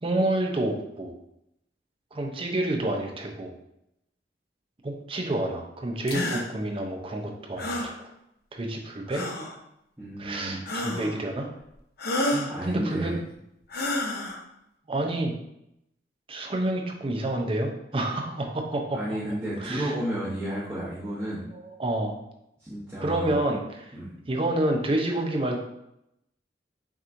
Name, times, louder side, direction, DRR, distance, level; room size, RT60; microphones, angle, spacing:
voice 1, 0.0-1.1 2.1-3.5 4.8-8.1 8.5-9.2 10.2-11.5 12.3-13.1 14.9-15.3 16.3-19.2 19.6-19.9 21.5-22.2 23.0-23.9 24.3-25.6, right 1 dB, 30° right, 2 dB, 0.6 m, -29 dB
sound 1, 6.1-6.4 7.6-7.9 9.1-9.5 10.7-11.2 12.0-12.5 13.7-14.4, left 1 dB, 60° left, 0.7 m, -29 dB
voice 2, 10.0-10.8 12.2-13.2 18.9-21.5 22.6-23.4 23.9-24.1, right 1 dB, 15° right, -10 dB, 1.0 m, -32 dB
5.9 x 3.0 x 2.6 m, 0.81 s
head